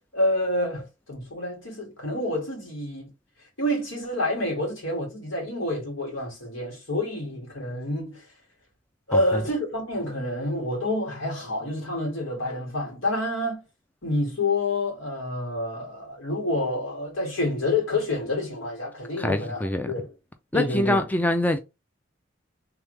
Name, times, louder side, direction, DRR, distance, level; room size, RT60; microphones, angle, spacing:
voice 1, 0.1-3.1 3.6-8.3 9.1-13.6 14.0-20.1 20.5-21.0, left 1 dB, 80° left, 2.4 m, -28 dB
voice 2, 19.2-19.9 20.5-21.6, left 1 dB, 10° left, 0.3 m, -24 dB
3.5 x 3.4 x 3.3 m
head